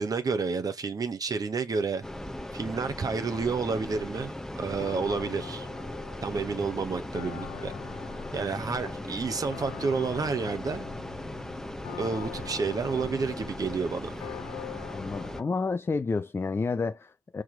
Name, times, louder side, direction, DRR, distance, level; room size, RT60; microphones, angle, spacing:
voice 1, 0.0-2.0 2.5-5.7 6.2-7.7 8.3-10.8 12.0-14.2, right 4 dB, 35° right, 1.4 m, -30 dB
sound 1, 2.0-15.4, left 1 dB, 5° left, 1.1 m, -38 dB
sound 2, 4.8-15.4, left 12 dB, 70° left, 1.3 m, -44 dB
voice 2, 14.9-17.4, left 4 dB, 25° left, 0.7 m, -30 dB
6.2 x 6.0 x 3.4 m
hypercardioid pair, 50°, 11 cm